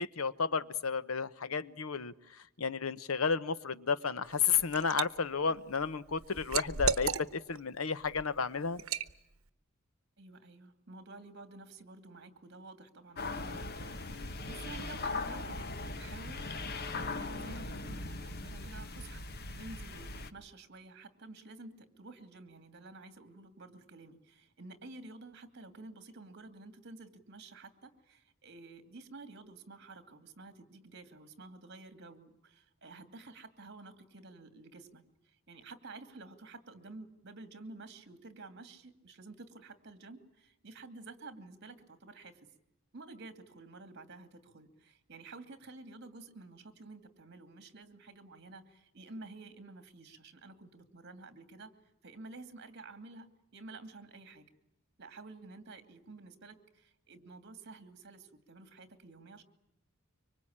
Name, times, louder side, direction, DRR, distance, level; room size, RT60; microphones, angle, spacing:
voice 1, 0.0-2.1 2.6-8.8, left 5 dB, 75° left, 15 dB, 0.9 m, -32 dB
Liquid, 4.3-5.1 5.5-7.6 8.0-8.2 8.8-9.1, right 6 dB, 75° right, 1.2 m, -34 dB
voice 2, 10.2-19.2 19.5-42.5 42.9-51.7 52.0-54.5 55.0-59.4, right 3 dB, 55° right, 9 dB, 2.6 m, -51 dB
sound 1, 13.2-20.3, left 3 dB, 50° left, 1.2 m, -39 dB
25.0 x 24.5 x 8.8 m, 0.84 s
head